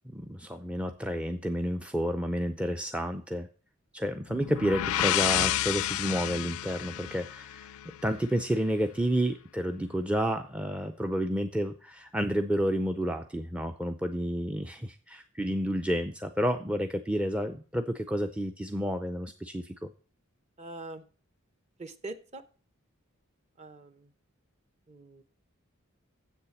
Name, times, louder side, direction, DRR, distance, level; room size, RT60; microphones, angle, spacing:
voice 1, 0.1-3.5 3.9-7.7 8.0-19.9, equal, 5° right, 6 dB, 0.4 m, -30 dB
sound 1, 4.3-8.1, left 12 dB, 85° left, 0.4 m, -30 dB
voice 2, 20.6-21.0 21.8-22.4 23.6-24.1 24.9-25.2, right 2 dB, 30° right, 10 dB, 0.8 m, -43 dB
7.8 x 6.9 x 7.0 m, 0.40 s
head